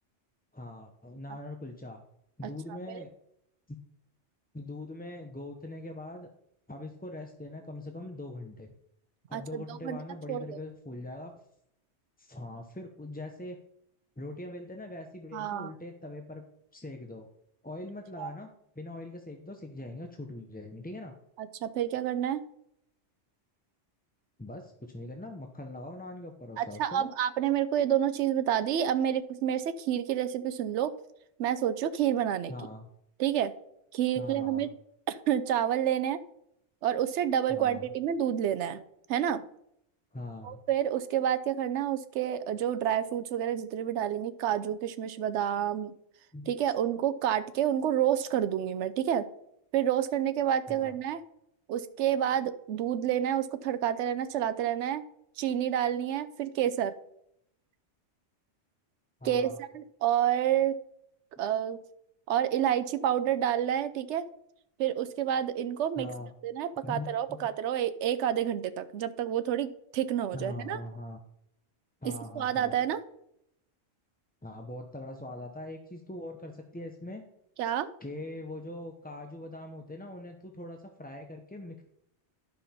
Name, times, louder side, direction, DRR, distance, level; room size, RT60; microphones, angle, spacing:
voice 1, 0.5-2.0 2.4-3.1 4.5-6.3 6.7-8.7 9.3-11.3 12.2-13.6 14.2-16.4 16.7-17.3 17.6-18.5 18.8-21.1 24.4-27.1 32.5-32.9 34.1-34.7 37.5-37.9 40.1-40.6 46.3-46.5 50.7-50.9 59.2-59.6 66.0-66.3 66.8-67.4 70.3-71.2 72.0-72.7 74.4-77.2 78.0-81.8, left 2 dB, 10° left, 3 dB, 0.5 m, -42 dB
voice 2, 2.7-3.0 9.3-10.0 10.3-10.6 15.3-15.7 18.2-18.3 21.4-22.4 26.6-30.9 31.4-32.5 33.2-33.5 33.9-34.7 35.1-36.2 36.8-38.8 39.1-39.4 40.4-45.9 46.5-49.3 49.7-51.2 51.7-55.0 55.4-56.9 59.2-60.8 61.4-61.8 62.3-64.2 64.8-66.1 66.4-70.8 72.0-73.0 77.6-77.9, right 10 dB, 85° right, 12 dB, 0.9 m, -29 dB
10.5 x 5.7 x 4.2 m, 0.75 s
omnidirectional pair, 1.2 m